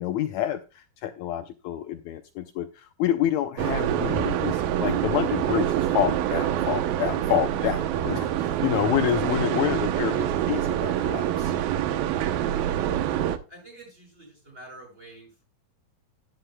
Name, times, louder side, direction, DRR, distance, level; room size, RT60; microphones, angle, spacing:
voice 1, 0.0-11.5, left 11 dB, 85° left, 7 dB, 1.6 m, -28 dB
sound 1, 3.6-13.4, right 11 dB, 80° right, 2.6 m, -26 dB
voice 2, 13.5-15.4, right 1 dB, 15° right, 1 dB, 6.9 m, -47 dB
11.5 x 10.5 x 2.2 m, 0.30 s
omnidirectional pair, 4.2 m